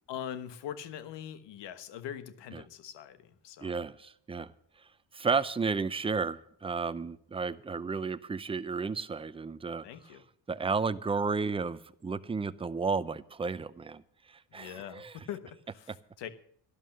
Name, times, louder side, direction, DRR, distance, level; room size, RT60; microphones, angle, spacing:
voice 1, 0.1-3.7 9.8-10.2 14.5-16.3, left 10 dB, 85° left, 12 dB, 1.3 m, -42 dB
voice 2, 3.6-4.5 5.1-9.9 10.5-14.0 14.3-15.1, right 4 dB, 15° right, 13 dB, 0.5 m, -32 dB
12.0 x 11.5 x 6.6 m, 0.64 s
cardioid pair, 120°, 41 cm